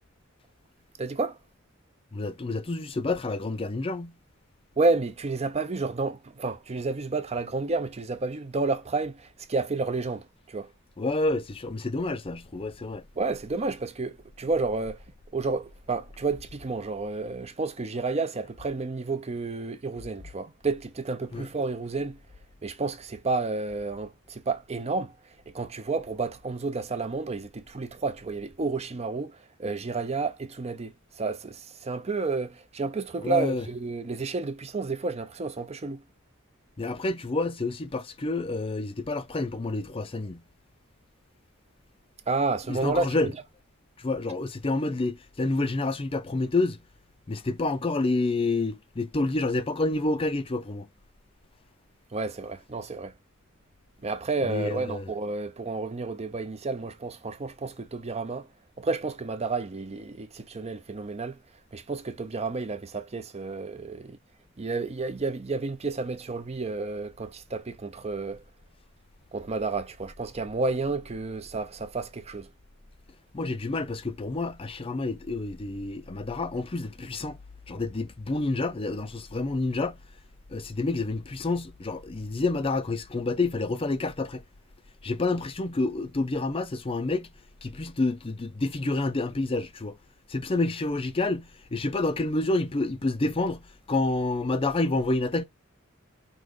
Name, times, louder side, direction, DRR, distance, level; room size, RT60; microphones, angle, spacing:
voice 1, 1.0-1.4 4.8-10.7 13.2-15.0 15.3-22.2 22.6-25.1 25.5-36.0 42.3-43.3 52.1-53.1 54.0-58.5 58.8-61.4 61.7-64.2 64.6-68.4 69.3-72.5, right 3 dB, 30° right, 0.6 m, -31 dB
voice 2, 2.1-4.1 11.0-13.0 21.3-21.5 33.2-33.6 36.8-40.4 42.7-43.3 44.0-46.8 47.3-50.9 54.5-55.1 73.3-77.4 77.7-80.0 80.5-84.4 85.0-87.3 87.6-90.0 90.3-93.6 93.9-95.4, left 2 dB, 25° left, 0.5 m, -28 dB
4.8 x 3.0 x 3.7 m
head